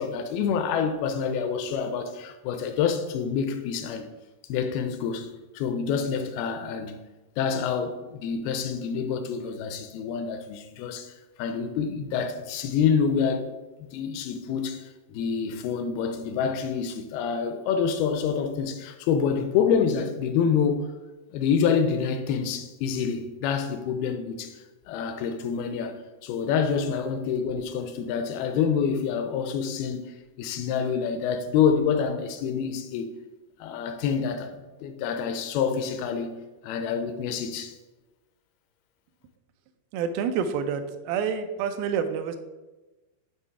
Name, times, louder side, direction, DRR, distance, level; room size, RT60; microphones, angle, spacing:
voice 1, 0.0-4.1 4.5-7.0 7.4-11.1 11.4-13.4 13.9-20.9 21.3-33.1 33.6-36.4 36.6-37.7, left 6 dB, 80° left, 2.4 m, -27 dB
voice 2, 39.9-42.4, right 7 dB, 80° right, 2.2 m, -28 dB
9.1 x 3.1 x 4.8 m
omnidirectional pair, 4.6 m